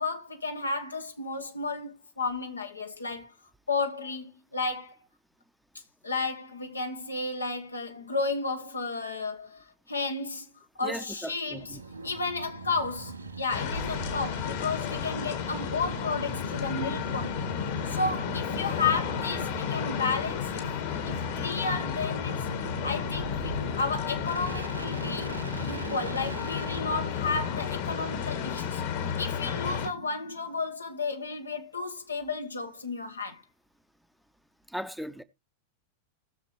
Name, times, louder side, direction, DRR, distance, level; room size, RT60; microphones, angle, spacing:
voice 1, 0.0-3.3 3.7-5.0 6.0-17.5 17.9-20.7 21.0-22.5 22.8-25.3 25.6-33.4, left 4 dB, 80° left, 1.3 m, -33 dB
voice 2, 10.8-11.8 34.7-35.2, equal, ahead, 0.7 m, -37 dB
sound 1, 11.5-26.8, right 3 dB, 80° right, 2.2 m, -40 dB
sound 2, 13.5-29.9, left 8 dB, 50° left, 1.8 m, -32 dB
18.5 x 6.7 x 3.1 m
figure-of-eight pair, 90°, 0 cm